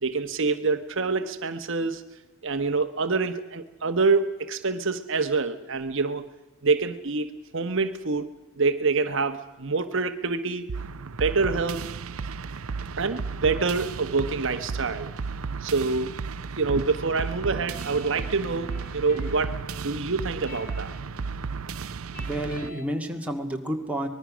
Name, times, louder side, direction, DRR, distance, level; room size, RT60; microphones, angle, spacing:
voice 1, 0.0-2.0 2.4-6.3 6.6-7.3 7.5-8.3 8.6-10.7 11.1-11.8 13.0-15.1 15.6-16.1 16.6-20.9, right 4 dB, 60° right, 9 dB, 1.1 m, -26 dB
sound 1, 10.7-22.7, right 5 dB, 75° right, 0.6 m, -34 dB
sound 2, 16.8-22.9, left 1 dB, 40° left, 3.2 m, -47 dB
voice 2, 22.2-24.1, right 1 dB, 5° right, 2 dB, 1.9 m, -30 dB
24.5 x 20.5 x 6.2 m, 1.1 s
head